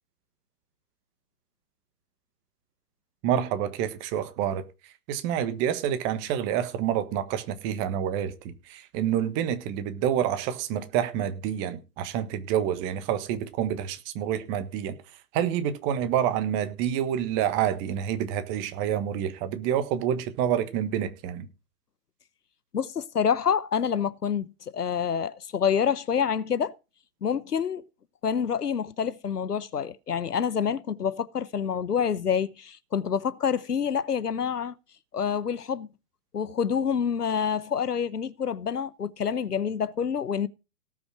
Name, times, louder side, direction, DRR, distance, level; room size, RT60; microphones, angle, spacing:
voice 1, 3.2-4.6 5.1-8.3 8.7-15.0 15.3-21.5, right 10 dB, 25° right, 1.4 m, -28 dB
voice 2, 22.7-26.7 27.2-27.8 28.2-34.7 35.1-35.9 36.3-40.5, left 7 dB, 80° left, 1.0 m, -27 dB
18.0 x 6.1 x 4.9 m
figure-of-eight pair, 130°, 46 cm